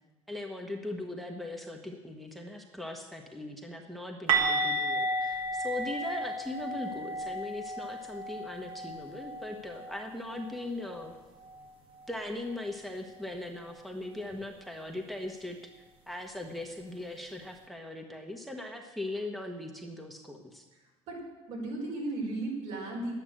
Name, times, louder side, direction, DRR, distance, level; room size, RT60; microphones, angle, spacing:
voice 1, 0.3-11.1 12.1-15.6 16.1-20.6, left 2 dB, ahead, 3 dB, 1.2 m, -39 dB
sound 1, 4.3-10.1 10.3-10.6 10.9-11.1 14.3-14.4, right 2 dB, 50° right, 2.2 m, -33 dB
voice 2, 21.1-23.1, right 2 dB, 70° right, -1 dB, 4.9 m, -35 dB
10.5 x 9.3 x 7.8 m, 1.2 s
cardioid pair, 120°, 12 cm